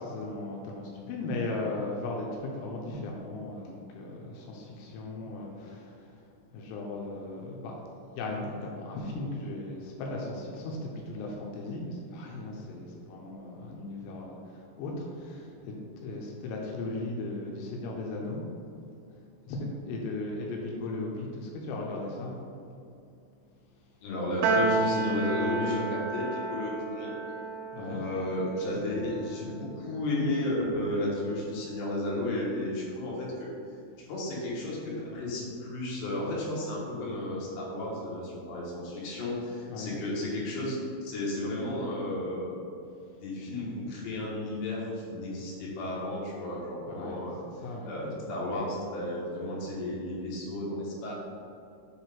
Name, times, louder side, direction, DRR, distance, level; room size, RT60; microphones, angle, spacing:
voice 1, 0.0-6.1 6.5-7.7 8.1-18.4 19.5-22.4 27.7-28.1 29.5-29.7 39.7-40.0 43.5-43.8 45.4-45.5 46.9-47.2 47.6-48.3, left 2 dB, 85° left, -1 dB, 3.3 m, -37 dB
voice 2, 24.0-27.1 27.7-33.5 34.1-42.5 43.2-47.4 47.9-51.1, left 1 dB, 70° left, -5 dB, 3.0 m, -33 dB
Piano, 24.4-30.9, right 3 dB, 85° right, 2.6 m, -32 dB
7.3 x 4.5 x 3.4 m, 2.5 s
omnidirectional pair, 5.9 m